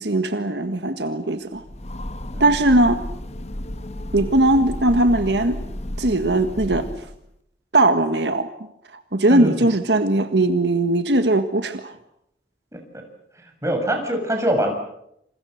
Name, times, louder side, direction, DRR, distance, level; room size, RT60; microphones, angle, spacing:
voice 1, 0.0-1.6 2.4-3.0 4.1-5.6 6.0-6.9 7.7-8.5 9.1-12.0, right 2 dB, 70° right, 8 dB, 1.7 m, -19 dB
Train, 1.5-7.3, left 1 dB, 40° left, 1.4 m, -32 dB
voice 2, 9.3-9.6 12.7-13.0 13.3-14.7, right 1 dB, 15° right, 3 dB, 7.3 m, -24 dB
28.5 x 27.5 x 6.6 m, 0.77 s
head